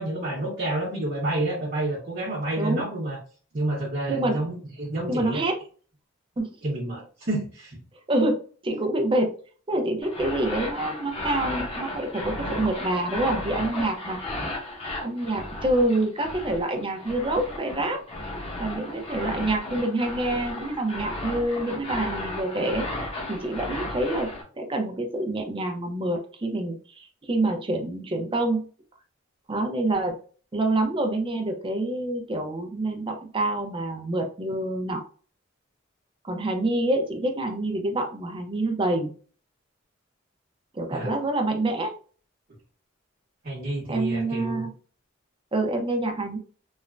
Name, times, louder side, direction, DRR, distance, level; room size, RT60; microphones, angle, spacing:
voice 1, 0.0-3.2 3.5-5.4 6.6-7.8 40.9-41.1 43.4-44.7, right 1 dB, 45° right, -5 dB, 0.9 m, -29 dB
voice 2, 4.1-4.4 5.1-5.6 6.4-6.5 8.1-8.4 8.6-9.3 9.7-14.2 15.0-18.0 18.6-22.8 23.3-24.3 24.6-28.7 29.5-30.1 30.5-35.0 36.2-39.1 40.7-41.9 43.9-44.7 45.5-46.4, right 2 dB, 25° right, 4 dB, 0.5 m, -26 dB
sound 1, 10.0-24.4, left 1 dB, 30° left, 0.8 m, -34 dB
3.1 x 2.1 x 2.4 m, 0.40 s
head